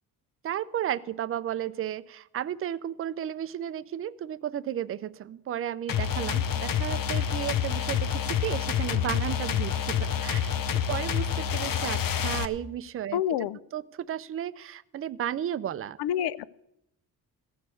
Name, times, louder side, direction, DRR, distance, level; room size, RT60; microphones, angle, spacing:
voice 1, 0.4-10.5 10.9-13.5 13.7-16.0, right 10 dB, 35° right, 16 dB, 0.4 m, -33 dB
sound 1, 5.9-12.4, left 8 dB, 60° left, 0.8 m, -28 dB
voice 2, 13.1-13.6 16.0-16.5, left 10 dB, 85° left, 18 dB, 0.6 m, -27 dB
15.0 x 6.3 x 8.1 m, 0.82 s
cardioid pair, 125°, 38 cm